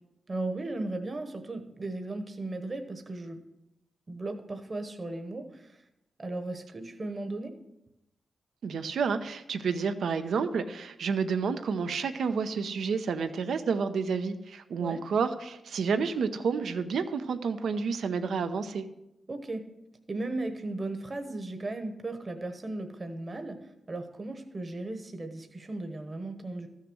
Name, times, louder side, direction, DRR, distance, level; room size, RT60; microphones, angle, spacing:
voice 1, 0.3-3.4 4.1-5.8 6.2-7.6 14.8-15.0 19.3-19.7 20.1-26.7, right 2 dB, 35° right, 6 dB, 1.1 m, -36 dB
voice 2, 8.6-18.9, right 5 dB, 85° right, 10 dB, 0.7 m, -30 dB
13.5 x 6.6 x 6.2 m, 0.88 s
cardioid pair, 85°, 0 cm